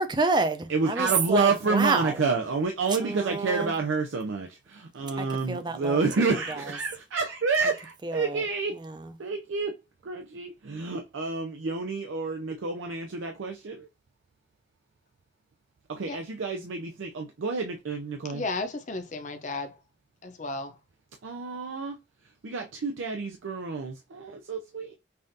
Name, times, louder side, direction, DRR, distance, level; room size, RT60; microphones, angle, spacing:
voice 1, 0.0-2.2 3.0-3.7 5.2-6.7 8.0-8.4 8.7-9.1, right 3 dB, 25° right, 0.4 m, -29 dB
voice 2, 0.7-8.8 9.2-9.7 10.0-13.9 15.9-18.4 21.2-22.0 22.4-24.9, right 4 dB, 85° right, 0.5 m, -29 dB
voice 3, 18.3-19.8 20.2-20.8, left 3 dB, 40° left, 0.6 m, -34 dB
5.5 x 2.5 x 2.6 m
head